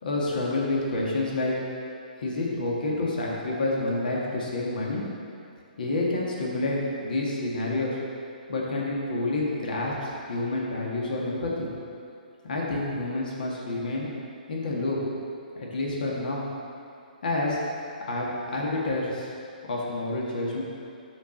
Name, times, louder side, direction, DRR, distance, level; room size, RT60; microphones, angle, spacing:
voice 1, 0.0-1.5 2.2-5.0 5.8-8.0 8.5-11.7 12.4-14.1 14.5-15.0 15.6-16.4 17.2-17.6 18.0-19.3 19.6-20.6, left 2 dB, 70° left, -3 dB, 1.9 m, -28 dB
12.5 x 4.9 x 3.9 m, 2.6 s
hypercardioid pair, 140°, 5 cm